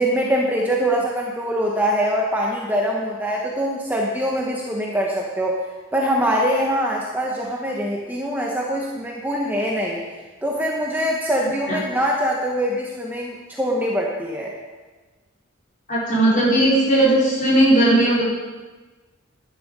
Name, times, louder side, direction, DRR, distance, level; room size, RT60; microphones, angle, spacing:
voice 1, 0.0-5.6 5.9-10.0 10.4-14.5, equal, 10° right, -2 dB, 1.1 m, -23 dB
voice 2, 15.9-18.2, right 1 dB, 35° left, -6 dB, 4.4 m, -17 dB
11.0 x 10.5 x 5.4 m, 1.3 s
head